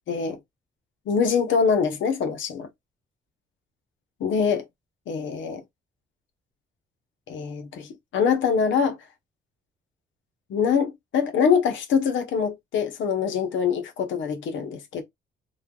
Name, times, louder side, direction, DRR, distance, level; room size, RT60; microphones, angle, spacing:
voice 1, 0.1-0.4 1.1-2.7 4.2-4.6 5.1-5.6 7.3-9.0 10.5-15.0, left 6 dB, 70° left, 0.8 m, -24 dB
3.2 x 2.2 x 2.3 m
cardioid pair, 90°, 20 cm